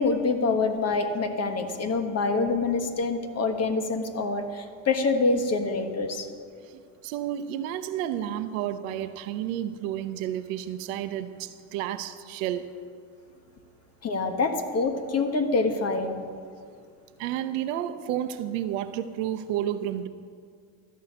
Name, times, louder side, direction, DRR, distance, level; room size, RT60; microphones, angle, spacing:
voice 1, 0.0-6.3 14.0-16.2, left 3 dB, 35° left, 7 dB, 1.4 m, -26 dB
voice 2, 7.0-12.7 17.2-20.1, right 11 dB, 70° right, 12 dB, 0.8 m, -31 dB
13.0 x 5.6 x 8.1 m, 2.2 s
hypercardioid pair, 70°, 41 cm